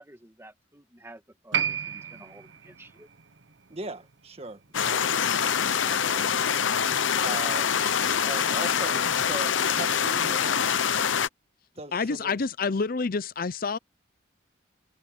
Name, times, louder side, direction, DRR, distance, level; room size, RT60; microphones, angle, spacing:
voice 1, 0.0-3.1, right 1 dB, 15° right, 1.7 m, -51 dB
Piano, 1.5-8.5 8.7-8.8, right 8 dB, 75° right, 1.1 m, -36 dB
voice 2, 3.7-5.1 5.8-6.3 7.2-7.8 8.3-11.0 11.8-12.4, right 2 dB, 30° right, 1.7 m, -39 dB
sound 1, 4.7-11.3, left 7 dB, 85° left, 0.8 m, -25 dB
voice 3, 11.9-13.8, left 4 dB, 50° left, 0.6 m, -28 dB
head